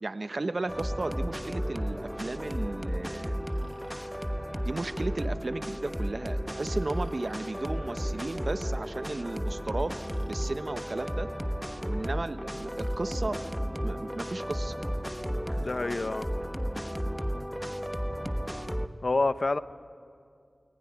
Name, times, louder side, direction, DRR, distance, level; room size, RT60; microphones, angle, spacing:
voice 1, 0.0-3.3 4.6-9.9 10.3-11.3 11.8-13.4 13.8-14.8, right 2 dB, 60° right, 10 dB, 1.1 m, -34 dB
sound 1, 0.7-18.9, equal, ahead, 1.2 m, -33 dB
Breathing, 3.4-4.3 6.6-7.6 9.9-10.6 12.7-13.2 15.4-16.1, right 1 dB, 20° right, 2.3 m, -56 dB
voice 2, 15.6-16.3 19.0-19.6, left 2 dB, 65° left, 12 dB, 0.8 m, -27 dB
29.5 x 20.5 x 9.4 m, 2.3 s
wide cardioid pair, 50°, 0 cm